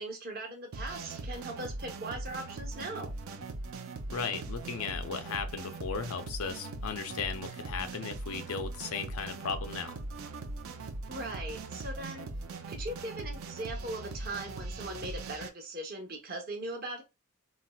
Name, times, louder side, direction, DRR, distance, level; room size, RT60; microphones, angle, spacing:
voice 1, 0.0-3.1 11.1-12.3 12.7-17.0, right 1 dB, 45° right, 0.8 m, -39 dB
sound 1, 0.7-15.5, right 3 dB, 70° right, 0.5 m, -40 dB
voice 2, 4.1-10.0, left 5 dB, 75° left, 0.5 m, -36 dB
4.0 x 2.0 x 2.2 m
head